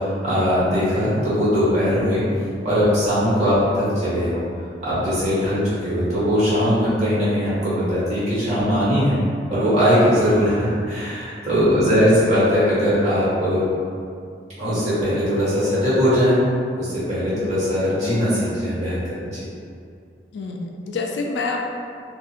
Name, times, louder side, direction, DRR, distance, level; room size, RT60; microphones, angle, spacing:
voice 1, 0.0-2.2 2.6-4.4 4.8-9.2 9.5-13.6 14.6-16.3 16.8-19.4, equal, 40° right, -11 dB, 1.0 m, -20 dB
voice 2, 11.7-12.0 17.3-17.5 20.3-21.6, left 3 dB, 75° left, 1 dB, 0.3 m, -28 dB
2.6 x 2.4 x 2.4 m, 2.3 s
head